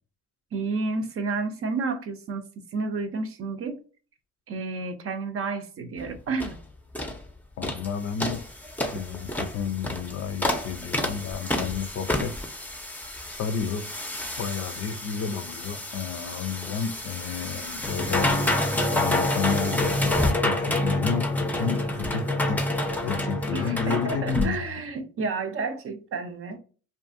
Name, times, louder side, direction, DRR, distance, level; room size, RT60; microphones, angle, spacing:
voice 1, 0.5-3.8 4.5-6.6 23.5-26.6, right 4 dB, 45° right, 0.6 m, -31 dB
sound 1, 6.0-6.1 6.4-6.6 6.9-7.2 7.6-7.9 8.2-24.5, left 1 dB, 5° left, 0.5 m, -28 dB
voice 2, 7.6-8.4 8.9-12.3 13.3-13.9 14.4-18.3 18.9-22.6 23.0-24.7, left 7 dB, 55° left, 0.5 m, -31 dB
2.6 x 2.5 x 2.5 m
cardioid pair, 90°, 30 cm